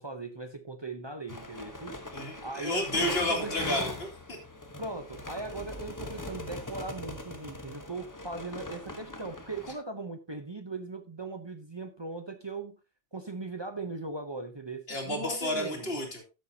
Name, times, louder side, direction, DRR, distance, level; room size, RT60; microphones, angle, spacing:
voice 1, 0.0-3.9 4.8-12.8 13.1-16.0, right 3 dB, 30° right, 0.7 m, -39 dB
sound 1, 1.3-9.8, left 2 dB, 20° left, 1.0 m, -41 dB
voice 2, 2.1-4.4 14.9-16.3, left 1 dB, 75° left, 2.7 m, -31 dB
13.0 x 6.9 x 2.7 m
omnidirectional pair, 1.0 m